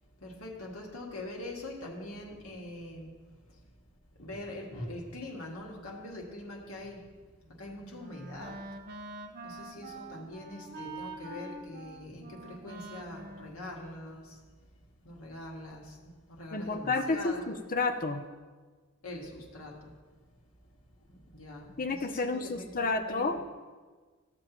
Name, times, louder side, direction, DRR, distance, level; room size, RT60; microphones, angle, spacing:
voice 1, 0.2-3.2 3.4-3.7 4.1-7.2 7.5-8.8 9.4-14.4 15.0-17.5 19.0-20.0 21.0-23.4, left 1 dB, 85° left, -1 dB, 1.8 m, -43 dB
Wind instrument woodwind instrument, 7.4-14.6, right 2 dB, 45° right, 0.8 m, -46 dB
voice 2, 16.5-18.3 21.8-23.4, left 3 dB, 40° left, 7 dB, 0.6 m, -30 dB
14.5 x 7.6 x 3.0 m, 1.4 s
head